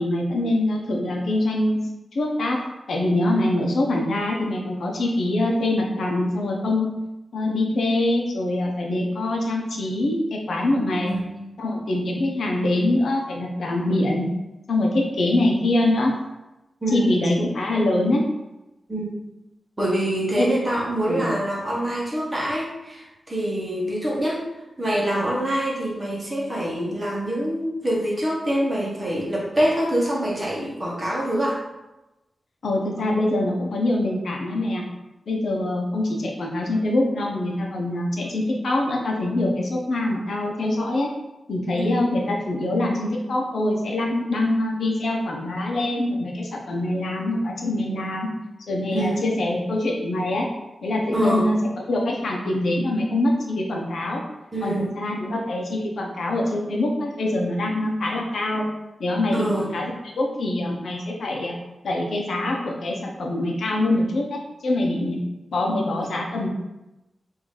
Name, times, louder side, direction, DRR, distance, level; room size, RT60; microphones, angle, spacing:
voice 1, 0.0-1.8 2.1-2.6 2.9-6.9 7.3-11.2 11.6-14.3 14.7-16.1 16.9-18.2 20.4-20.5 21.1-21.3 32.6-34.8 35.3-41.1 41.5-48.3 48.7-50.5 50.8-54.2 54.6-58.7 59.0-59.9 60.2-61.6 61.8-65.2 65.5-66.5, left 1 dB, 75° left, 0 dB, 0.8 m, -24 dB
voice 2, 11.1-11.4 16.8-17.2 18.9-19.1 19.8-24.5 24.8-31.6 41.7-42.0 48.9-49.2 51.1-51.5 54.5-54.9 59.3-59.7, right 1 dB, 15° right, -5 dB, 1.1 m, -25 dB
3.8 x 2.7 x 4.8 m, 0.98 s
wide cardioid pair, 180°, 0 cm